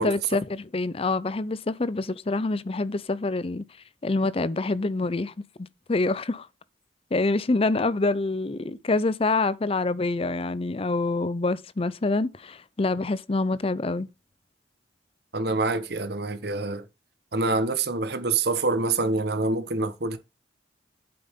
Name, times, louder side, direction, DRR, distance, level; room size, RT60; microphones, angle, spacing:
voice 1, 0.0-3.6 4.0-5.3 5.6-6.5 7.1-14.1, left 3 dB, 35° left, 0.5 m, -26 dB
voice 2, 15.3-16.8 17.3-20.2, right 3 dB, 65° right, 1.2 m, -26 dB
9.0 x 7.8 x 3.7 m
head